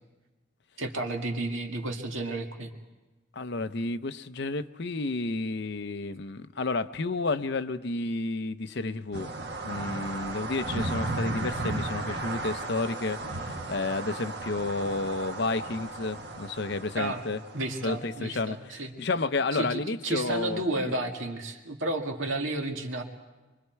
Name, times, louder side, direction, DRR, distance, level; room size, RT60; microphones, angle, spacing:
voice 1, 0.8-2.7 17.0-17.2 17.5-18.9 19.5-23.0, right 2 dB, 75° right, 2 dB, 2.1 m, -32 dB
voice 2, 3.3-9.3 9.6-17.4 17.8-20.6, left 3 dB, 55° left, 11 dB, 0.7 m, -31 dB
sound 1, 9.1-17.9, right 2 dB, 55° right, 1.6 m, -35 dB
25.5 x 24.0 x 4.6 m, 1.2 s
head